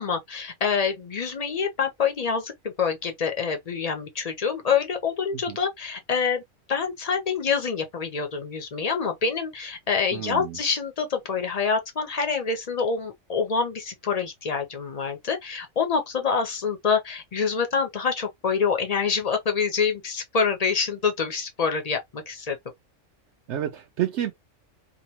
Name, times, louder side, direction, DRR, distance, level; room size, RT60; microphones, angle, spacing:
voice 1, 0.0-6.4 6.7-22.6, left 5 dB, 55° left, 0.4 m, -26 dB
voice 2, 10.1-10.6 23.5-24.3, right 11 dB, 70° right, 0.8 m, -29 dB
2.8 x 2.0 x 2.8 m
omnidirectional pair, 1.3 m